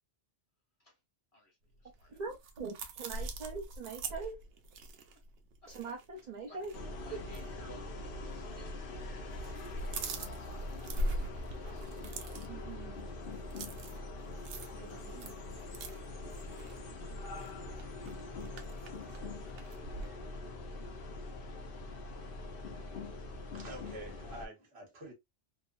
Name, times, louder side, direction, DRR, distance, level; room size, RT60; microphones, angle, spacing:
voice 1, 1.3-2.2 6.2-8.0 8.3-10.0 11.1-12.7 14.9-15.2 15.5-16.9, left 1 dB, 30° left, 1.3 m, -60 dB
sound 1, 1.8-6.3 6.6-6.8 7.2-7.4 8.3-8.9 9.2-20.1, right 1 dB, 90° right, 0.9 m, -42 dB
voice 2, 2.1-4.4 5.7-6.7 7.1-7.2, right 4 dB, 45° right, 0.6 m, -41 dB
sound 2, 6.7-24.5, left 2 dB, 60° left, 0.8 m, -43 dB
voice 3, 23.5-25.1, right 1 dB, 65° right, 1.3 m, -47 dB
3.0 x 2.0 x 2.4 m
omnidirectional pair, 1.2 m